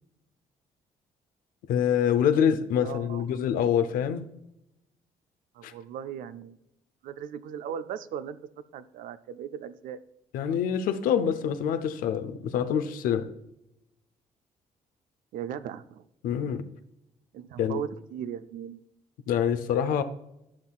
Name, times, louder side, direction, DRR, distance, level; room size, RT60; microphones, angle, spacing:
voice 1, 1.7-4.2 5.6-5.7 10.3-13.3 16.2-16.6 17.6-17.8 19.3-20.0, left 8 dB, 80° left, 0.6 m, -25 dB
voice 2, 2.8-3.2 5.6-6.6 7.0-8.4 8.7-10.0 15.3-16.0 17.3-18.8, right 9 dB, 75° right, 0.5 m, -37 dB
11.5 x 5.8 x 2.4 m
supercardioid pair, 65°, 14 cm